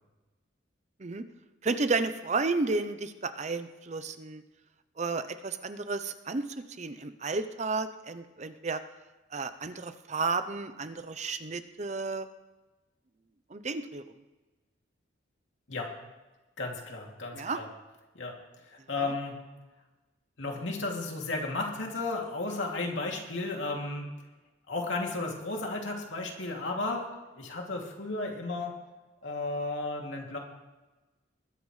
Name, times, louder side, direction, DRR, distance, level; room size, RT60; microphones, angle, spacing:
voice 1, 1.6-4.4 5.0-6.4 6.8-8.8 9.3-12.3 13.5-14.0 17.3-17.6, right 3 dB, 35° right, 11 dB, 0.6 m, -32 dB
voice 2, 16.6-17.7 18.1-18.4 18.6-19.4 20.4-24.1 24.7-28.7 29.2-30.4, left 2 dB, 80° left, 0 dB, 2.6 m, -34 dB
20.5 x 13.5 x 3.2 m, 1.1 s
head